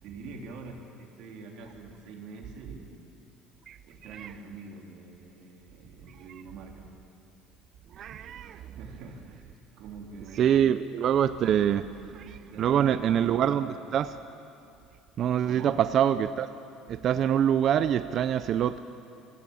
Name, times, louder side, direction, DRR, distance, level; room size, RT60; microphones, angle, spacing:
voice 1, 0.0-3.2 3.8-6.9 8.7-10.7 12.4-13.7 15.4-15.7, right 4 dB, 65° right, 1 dB, 3.1 m, -45 dB
voice 2, 4.0-4.3 7.9-8.8 10.3-11.9 12.1-14.2 15.2-16.5 16.9-18.8, right 9 dB, 45° right, 12 dB, 0.5 m, -25 dB
24.0 x 15.5 x 7.1 m, 2.6 s
cardioid pair, 135°, 0 cm